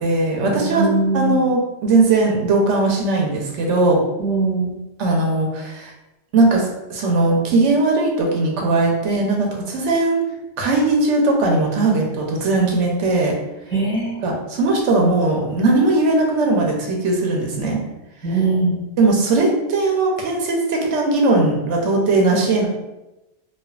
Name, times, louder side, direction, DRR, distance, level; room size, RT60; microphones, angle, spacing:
voice 1, 0.0-0.9 1.1-4.0 5.0-5.9 6.3-10.2 10.6-13.4 14.2-17.8 19.0-22.7, right 2 dB, 90° right, 0 dB, 1.0 m, -19 dB
voice 2, 0.5-1.4 4.2-4.7 13.7-14.2 18.2-18.8, right 3 dB, 5° left, -8 dB, 1.1 m, -21 dB
3.2 x 2.2 x 2.3 m, 0.97 s
omnidirectional pair, 1.2 m